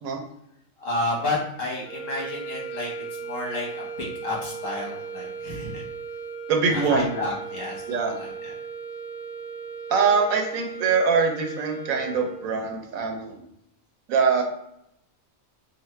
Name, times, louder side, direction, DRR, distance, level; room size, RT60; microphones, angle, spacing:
voice 1, 0.8-2.9 3.2-3.8 4.2-5.8 6.7-8.5, left 2 dB, 70° left, -4 dB, 1.7 m, -31 dB
sound 1, 1.8-12.7, right 5 dB, 25° left, 1.0 m, -37 dB
voice 2, 6.5-7.0 7.9-8.1 9.9-13.4 14.1-14.4, right 5 dB, 80° right, 3 dB, 1.1 m, -23 dB
3.9 x 2.2 x 3.2 m, 0.78 s
omnidirectional pair, 1.4 m